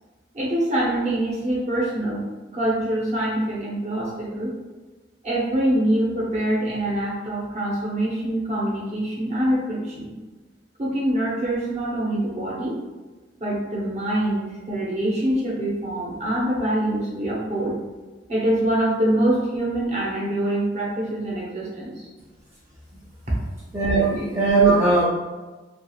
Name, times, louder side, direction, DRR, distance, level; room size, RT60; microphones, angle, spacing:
voice 1, 0.3-2.2 2.5-4.5 5.2-10.1 10.8-12.8 13.4-17.8 18.3-22.1 23.3-23.4 24.6-24.7, right 1 dB, 40° right, -5 dB, 0.8 m, -24 dB
voice 2, 23.7-25.0, right 3 dB, 15° right, -9 dB, 0.4 m, -19 dB
2.4 x 2.3 x 3.0 m, 1.2 s
head